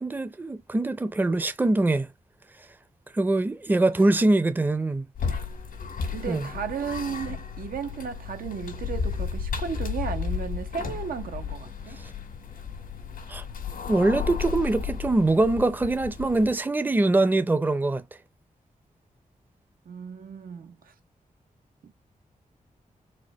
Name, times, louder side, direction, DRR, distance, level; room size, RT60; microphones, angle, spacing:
voice 1, 0.0-2.1 3.1-5.1 6.3-6.5 13.3-13.4 13.9-18.0, right 2 dB, 15° right, 0.5 m, -23 dB
sound 1, 5.2-16.6, left 6 dB, 85° left, 1.6 m, -33 dB
voice 2, 6.1-12.0 19.9-20.9 21.8-21.9, right 7 dB, 90° right, 0.8 m, -34 dB
4.3 x 2.2 x 4.6 m
wide cardioid pair, 110°, 14 cm